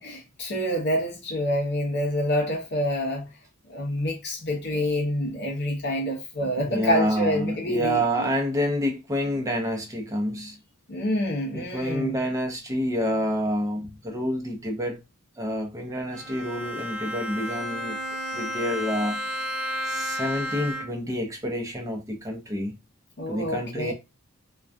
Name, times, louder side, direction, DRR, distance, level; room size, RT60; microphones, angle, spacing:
voice 1, 0.0-3.3 3.6-8.3 10.9-12.2 23.2-23.9, equal, 55° left, 0.6 m, -27 dB
voice 2, 6.4-10.6 11.5-15.0 15.4-18.0 18.3-19.2 19.8-22.7 23.3-23.9, equal, 15° right, 0.6 m, -28 dB
Bowed string instrument, 16.1-21.2, equal, 80° right, 0.4 m, -32 dB
2.2 x 2.2 x 2.4 m
head